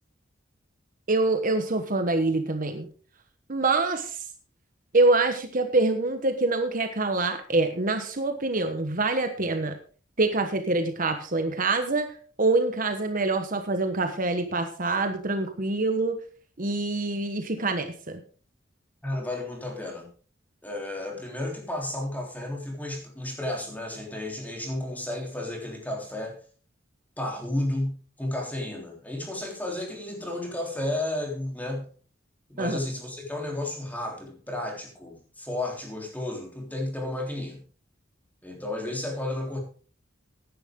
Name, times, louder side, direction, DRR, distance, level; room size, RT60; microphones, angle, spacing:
voice 1, 1.1-2.9 3.5-4.2 4.9-9.8 10.2-12.1 12.4-16.2 16.6-18.2 32.6-32.8, right 2 dB, 45° right, 7 dB, 1.2 m, -25 dB
voice 2, 19.0-20.1 20.6-26.4 27.2-31.9 32.5-37.6 38.4-39.6, left 1 dB, 10° left, 1 dB, 3.5 m, -32 dB
15.0 x 10.5 x 3.7 m, 0.40 s
head